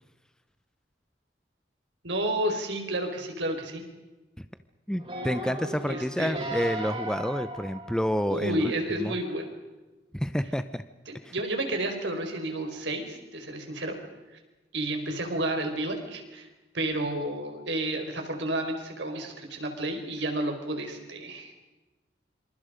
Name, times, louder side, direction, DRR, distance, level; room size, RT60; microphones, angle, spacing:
voice 1, 2.0-3.8 5.9-6.4 8.3-9.5 11.1-14.0 14.7-16.5 16.7-21.5, right 1 dB, 75° right, 4 dB, 5.0 m, -31 dB
voice 2, 4.9-8.7 9.0-9.1 10.1-10.8 11.2-11.3, equal, 5° left, 11 dB, 0.7 m, -29 dB
sound 1, 5.0-8.5 9.1-9.2, right 1 dB, 30° right, 7.0 m, -36 dB
27.5 x 27.0 x 5.1 m, 1.1 s
head